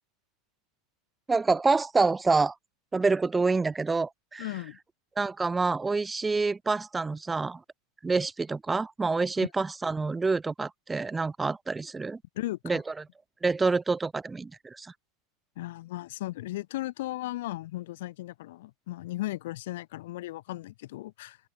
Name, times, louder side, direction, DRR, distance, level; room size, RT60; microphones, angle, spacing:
voice 1, 1.3-2.5 2.9-4.4 5.2-7.6 8.0-12.2 12.6-12.8 13.4-14.9, right 4 dB, 10° right, 1.9 m, -27 dB
voice 2, 4.4-4.8 9.4-9.5 12.3-12.8 15.5-21.4, left 16 dB, 75° left, 5.1 m, -36 dB
open air
supercardioid pair, 140°, 0 cm